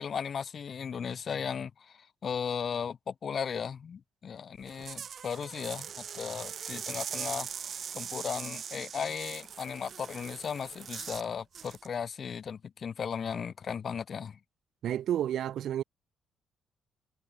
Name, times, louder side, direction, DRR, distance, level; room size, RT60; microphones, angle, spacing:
voice 1, 0.0-14.4, left 7 dB, 50° left, 0.9 m, -36 dB
sound 1, 4.6-11.3 11.5-11.9, right 8 dB, 55° right, 3.6 m, -41 dB
voice 2, 14.8-15.8, right 11 dB, 70° right, 0.6 m, -30 dB
cardioid pair, 90°, 0 cm